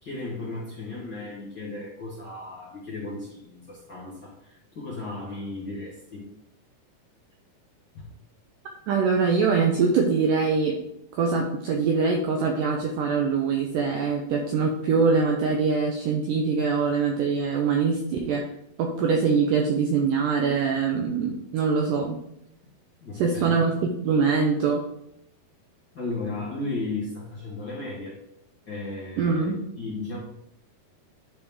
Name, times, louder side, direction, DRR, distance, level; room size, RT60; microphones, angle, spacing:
voice 1, 0.0-6.3 7.9-8.1 23.0-23.6 25.9-28.2 28.6-30.2, left 2 dB, 40° left, -7 dB, 1.7 m, -35 dB
voice 2, 8.9-10.8 11.1-18.4 18.8-22.2 23.2-23.7 24.0-24.8 29.2-29.6, right 5 dB, 80° right, 2 dB, 1.9 m, -23 dB
10.0 x 4.4 x 3.6 m, 0.77 s
omnidirectional pair, 4.6 m